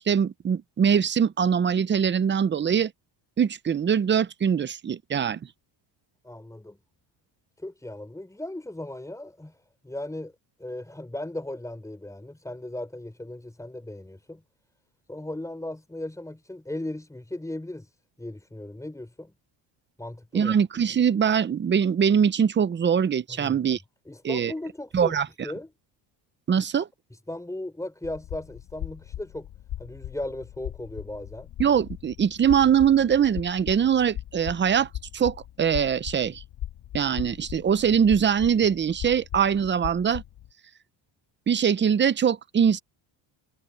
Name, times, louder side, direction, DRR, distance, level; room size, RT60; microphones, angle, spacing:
voice 1, 0.0-2.9 3.4-5.4 20.3-23.8 24.2-24.5 24.9-25.3 26.5-26.9 31.6-34.9 35.1-36.4 36.9-40.2 41.5-42.8, right 8 dB, 25° right, 0.7 m, -22 dB
voice 2, 6.2-6.8 7.6-9.6 9.8-10.3 10.6-14.4 15.1-17.9 18.2-19.3 20.0-20.6 23.3-23.6 24.1-25.2 25.4-25.7 26.6-26.8 27.1-29.5 29.8-31.5, left 1 dB, 5° left, 6.3 m, -37 dB
sound 1, 28.0-40.5, left 12 dB, 60° left, 2.6 m, -39 dB
cardioid pair, 120°, 45 cm